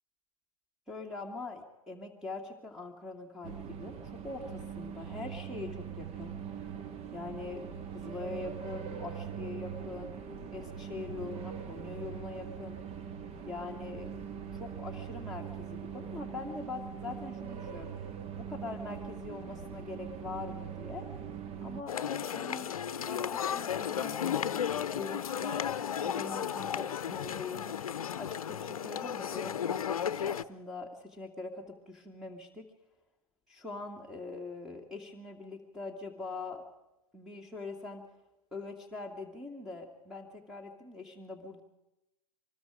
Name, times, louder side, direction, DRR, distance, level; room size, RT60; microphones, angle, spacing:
voice 1, 0.9-6.3 7.1-10.1 10.5-12.8 13.5-14.2 14.5-17.9 18.3-21.1 21.6-25.7 26.0-27.7 28.1-32.7 33.5-36.6 37.1-38.1 38.5-41.6, left 3 dB, 5° right, 5 dB, 2.5 m, -43 dB
sound 1, 3.4-21.8, right 7 dB, 35° right, 1.6 m, -42 dB
sound 2, 21.9-30.4, left 8 dB, 75° left, 0.7 m, -34 dB
25.0 x 21.0 x 5.1 m, 0.95 s
figure-of-eight pair, 95°, 18 cm